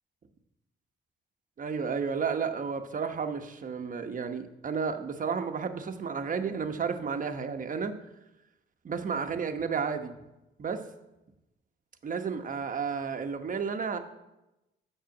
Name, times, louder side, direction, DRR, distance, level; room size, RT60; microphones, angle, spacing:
voice 1, 1.6-7.9 8.8-10.1 10.6-10.8 12.0-14.0, right 6 dB, 40° right, 7 dB, 1.1 m, -32 dB
7.6 x 6.6 x 7.1 m, 0.94 s
cardioid pair, 90°, 20 cm